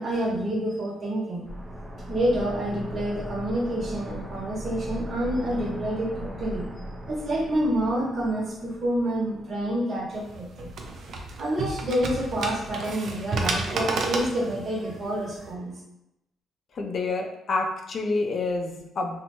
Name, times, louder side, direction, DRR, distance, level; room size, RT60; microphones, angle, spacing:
voice 1, 0.0-1.5 2.1-6.7 7.1-10.7 11.4-15.7, right 1 dB, 50° right, -3 dB, 1.0 m, -28 dB
sound 1, 1.5-10.2 10.4-10.5, equal, 10° right, 0.5 m, -38 dB
sound 2, 10.1-15.5, right 3 dB, 65° right, 0.4 m, -32 dB
voice 2, 16.7-19.2, left 3 dB, 50° left, 3 dB, 0.4 m, -28 dB
2.6 x 2.1 x 2.9 m, 0.85 s
cardioid pair, 90°, 0 cm